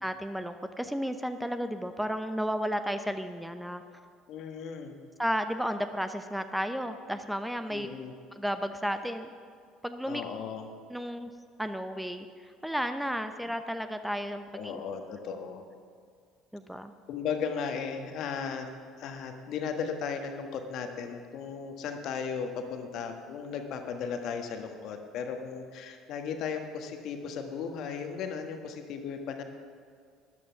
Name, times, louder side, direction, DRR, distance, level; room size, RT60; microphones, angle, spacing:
voice 1, 0.0-3.8 5.2-7.9 8.3-9.3 9.8-10.2 10.9-11.3 11.6-14.8 16.5-16.9, equal, 5° right, 9 dB, 0.7 m, -33 dB
voice 2, 4.3-4.9 7.7-8.1 10.1-10.7 14.5-15.6 17.1-18.7 19.0-29.4, left 6 dB, 55° left, 6 dB, 1.4 m, -36 dB
13.5 x 11.0 x 5.9 m, 2.1 s
figure-of-eight pair, 60°, 0 cm